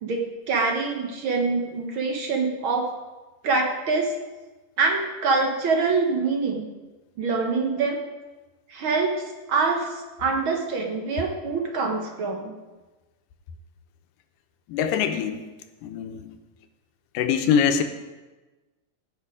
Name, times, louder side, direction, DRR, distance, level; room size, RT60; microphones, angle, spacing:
voice 1, 0.0-2.9 3.4-4.1 4.8-6.6 7.2-8.0 8.7-9.2 9.5-12.5, right 4 dB, 60° right, 1 dB, 1.3 m, -25 dB
voice 2, 14.7-15.4 15.8-16.3 17.1-17.8, left 7 dB, 80° left, 8 dB, 2.4 m, -23 dB
16.0 x 6.4 x 5.0 m, 1.2 s
omnidirectional pair, 3.8 m